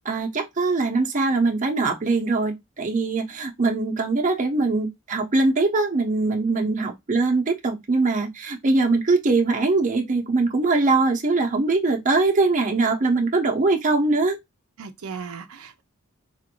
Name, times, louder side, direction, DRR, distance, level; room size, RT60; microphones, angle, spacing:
voice 1, 0.0-14.4, right 3 dB, 40° right, 0.7 m, -22 dB
voice 2, 6.5-6.8 14.8-15.8, right 5 dB, 85° right, 0.5 m, -37 dB
4.2 x 2.5 x 2.9 m
head